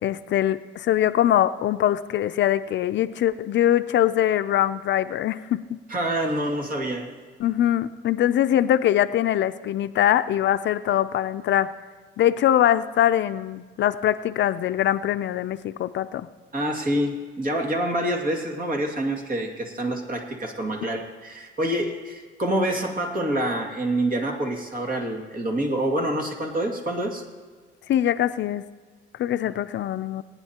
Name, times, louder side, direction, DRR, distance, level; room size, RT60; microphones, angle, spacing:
voice 1, 0.0-5.8 7.4-11.7 12.2-16.3 27.9-28.6 29.2-30.2, left 11 dB, 65° left, 12 dB, 0.5 m, -22 dB
voice 2, 5.9-7.1 16.5-27.2, right 1 dB, 45° right, 2 dB, 2.3 m, -27 dB
22.5 x 9.7 x 2.9 m, 1.5 s
cardioid pair, 90°, 20 cm